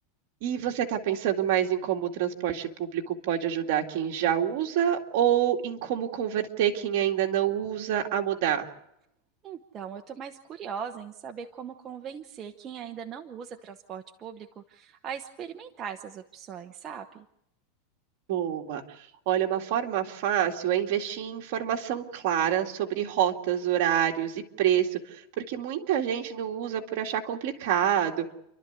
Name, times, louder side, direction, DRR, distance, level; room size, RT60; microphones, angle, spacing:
voice 1, 0.4-8.7 18.3-18.8 19.3-28.3, right 10 dB, 50° right, 2 dB, 2.2 m, -27 dB
voice 2, 9.4-17.3, right 7 dB, 20° right, 4 dB, 0.9 m, -40 dB
29.5 x 12.5 x 8.2 m, 0.82 s
supercardioid pair, 170°, 0 cm